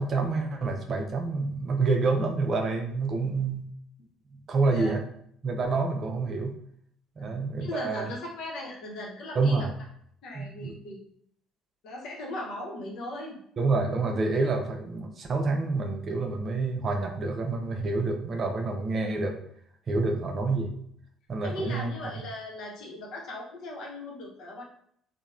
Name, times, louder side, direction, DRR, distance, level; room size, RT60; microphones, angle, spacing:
voice 1, 0.0-3.7 4.3-5.1 5.4-6.6 7.2-8.1 9.3-9.7 10.3-10.7 13.6-19.4 19.9-20.7 21.3-22.1, right 3 dB, 45° right, 3 dB, 0.5 m, -28 dB
voice 2, 7.2-9.7 10.2-11.0 11.8-13.4 21.4-24.6, left 1 dB, 65° left, -2 dB, 0.8 m, -38 dB
2.9 x 2.1 x 2.4 m, 0.68 s
hypercardioid pair, 55°, 0 cm